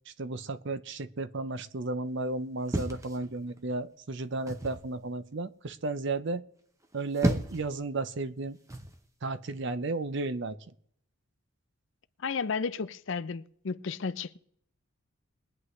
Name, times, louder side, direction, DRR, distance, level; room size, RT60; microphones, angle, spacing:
voice 1, 0.1-6.4 6.9-8.6 9.2-10.6, right 3 dB, 55° right, 0.6 m, -33 dB
sound 1, 2.7-3.7 4.5-4.9 6.8-7.7 8.7-9.0, right 1 dB, 15° right, 0.8 m, -32 dB
voice 2, 12.2-14.4, left 5 dB, 60° left, 0.5 m, -33 dB
22.0 x 9.7 x 3.2 m
head